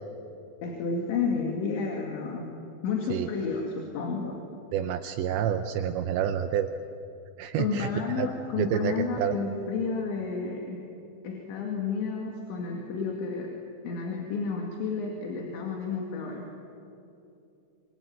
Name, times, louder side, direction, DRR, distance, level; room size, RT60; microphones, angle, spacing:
voice 1, 0.6-2.5 2.8-4.4 7.6-10.8 11.2-13.5 13.8-16.5, left 5 dB, 75° left, 1 dB, 4.5 m, -31 dB
voice 2, 4.7-6.7 7.4-7.9 8.2-8.3 8.6-9.3, right 9 dB, 80° right, 7 dB, 3.0 m, -28 dB
27.0 x 23.5 x 9.3 m, 2.8 s
omnidirectional pair, 5.4 m